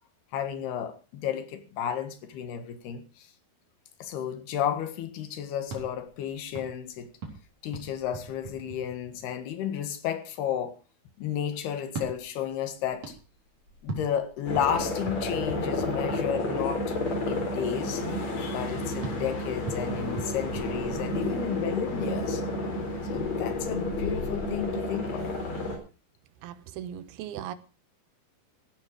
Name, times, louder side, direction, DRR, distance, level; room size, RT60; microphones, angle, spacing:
voice 1, 0.3-3.3 4.0-7.1 7.6-10.8 11.2-13.2 13.8-17.0 17.3-18.1 18.4-22.4 23.1-25.3, left 9 dB, 85° left, 3.7 m, -32 dB
sound 1, 5.6-9.5 11.8-16.7 19.0-21.4, right 4 dB, 40° right, 4.9 m, -42 dB
sound 2, 14.5-25.8, left 2 dB, 45° left, 4.8 m, -31 dB
voice 2, 26.4-27.5, right 10 dB, 80° right, 2.9 m, -38 dB
16.0 x 12.5 x 4.8 m
omnidirectional pair, 4.5 m